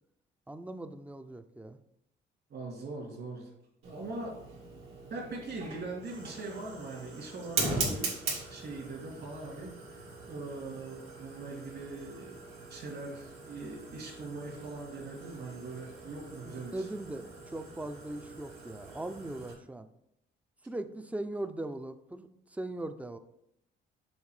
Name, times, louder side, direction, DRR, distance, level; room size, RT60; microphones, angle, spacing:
voice 1, 0.5-1.8 16.5-19.9 20.7-23.2, right 1 dB, 5° right, 10 dB, 0.5 m, -39 dB
voice 2, 2.5-3.5 3.8-4.3 5.1-8.2 8.5-10.0 10.3-12.4 12.7-16.9, right 3 dB, 60° right, -1 dB, 2.6 m, -41 dB
Fire, 3.8-19.5, right 3 dB, 85° right, 2.4 m, -41 dB
7.1 x 3.7 x 4.9 m, 0.80 s
cardioid pair, 90°, 20 cm